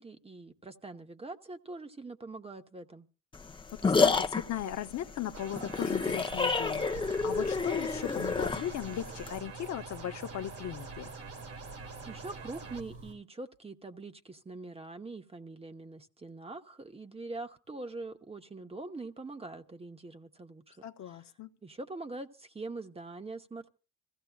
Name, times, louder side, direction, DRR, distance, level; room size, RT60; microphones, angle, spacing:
voice 1, 0.0-3.1 12.1-21.3 21.6-23.7, right 3 dB, 20° right, 0.9 m, -43 dB
sound 1, 3.3-9.4, left 4 dB, 15° left, 0.7 m, -29 dB
voice 2, 3.7-11.1 20.8-21.5, left 10 dB, 65° left, 0.8 m, -38 dB
sound 2, 5.3-12.8, right 5 dB, 50° right, 1.6 m, -47 dB
sound 3, 6.3-13.1, right 2 dB, 85° right, 6.7 m, -48 dB
26.0 x 15.5 x 2.3 m
cardioid pair, 90°, 30 cm